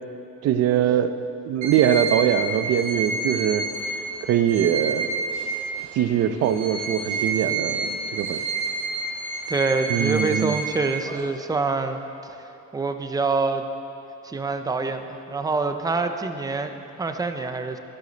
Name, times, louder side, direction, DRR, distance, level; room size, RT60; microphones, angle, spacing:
voice 1, 0.4-1.2 1.4-3.7 4.2-5.1 5.9-8.4 9.9-10.6, right 9 dB, 55° right, 11 dB, 0.6 m, -22 dB
sound 1, 1.6-6.0 6.4-11.3, right 3 dB, 75° right, 2.6 m, -29 dB
voice 2, 9.5-12.4 12.7-13.7 14.2-17.8, right 3 dB, 10° right, 7 dB, 0.5 m, -26 dB
23.0 x 8.3 x 4.0 m, 2.8 s
cardioid pair, 175°, 31 cm